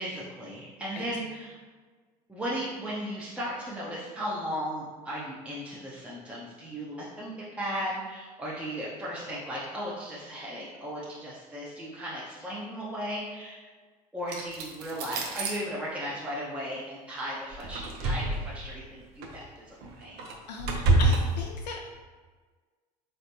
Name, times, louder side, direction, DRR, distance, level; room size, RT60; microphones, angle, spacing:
voice 1, 0.0-1.6 2.3-13.6 14.1-20.3, equal, 5° right, -6 dB, 0.7 m, -36 dB
sound 1, 14.3-15.6 17.5-18.7 19.2-19.4 19.8-21.2, right 2 dB, 50° right, 0.7 m, -27 dB
voice 2, 20.5-21.9, left 4 dB, 80° left, 1 dB, 0.4 m, -38 dB
4.0 x 3.2 x 2.7 m, 1.4 s
figure-of-eight pair, 65°, 21 cm